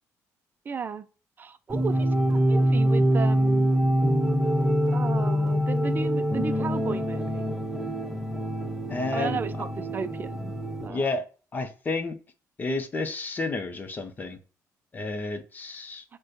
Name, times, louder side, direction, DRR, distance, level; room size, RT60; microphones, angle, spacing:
voice 1, 0.7-1.1 1.4-3.8 4.9-7.5 9.1-10.5 10.8-11.1, right 6 dB, 30° right, 0.4 m, -34 dB
sound 1, 1.7-10.9, equal, 5° right, 0.8 m, -25 dB
voice 2, 8.9-9.4 10.9-11.3 11.5-12.2 12.6-14.4 14.9-16.0, left 3 dB, 30° left, 0.7 m, -30 dB
6.1 x 2.2 x 2.5 m
cardioid pair, 115°, 6 cm